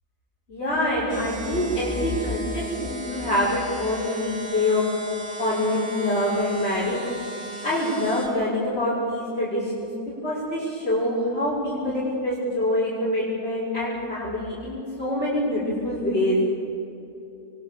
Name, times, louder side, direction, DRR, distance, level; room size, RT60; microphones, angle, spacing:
voice 1, 0.5-4.8 5.4-7.0 7.6-9.9 10.2-16.4, left 1 dB, 50° left, -9 dB, 6.3 m, -25 dB
sound 1, 1.1-8.3, right 1 dB, 25° right, 3.5 m, -36 dB
28.5 x 23.0 x 7.0 m, 2.7 s
omnidirectional pair, 1.4 m